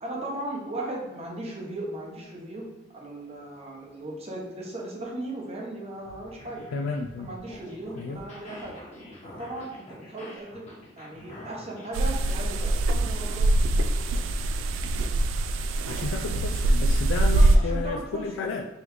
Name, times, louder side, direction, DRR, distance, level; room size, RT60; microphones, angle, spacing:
voice 1, 0.0-2.6 2.9-6.7 7.2-8.8 9.2-10.7 11.0-13.5 17.2-18.5, right 1 dB, 35° right, -1 dB, 0.8 m, -37 dB
sound 1, 5.9-11.9, left 1 dB, 35° left, 1.1 m, -46 dB
voice 2, 6.7-7.4 7.9-8.2 15.9-18.7, left 4 dB, 85° left, 3 dB, 0.3 m, -32 dB
sound 2, 11.9-17.6, right 2 dB, 85° right, 0.3 m, -23 dB
3.9 x 3.3 x 3.0 m, 1.1 s
head